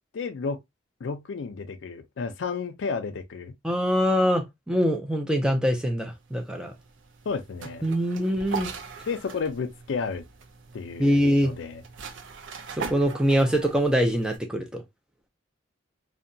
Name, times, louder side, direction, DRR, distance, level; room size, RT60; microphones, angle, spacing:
voice 1, 0.1-0.6 1.0-3.5 7.3-7.8 9.1-10.2 10.7-11.8, left 5 dB, 75° left, 0.4 m, -32 dB
voice 2, 3.6-6.7 7.8-8.7 11.0-11.5 12.8-14.8, equal, 5° right, 0.4 m, -23 dB
sound 1, 6.1-14.4, right 5 dB, 80° right, 0.5 m, -41 dB
2.7 x 2.1 x 2.5 m
head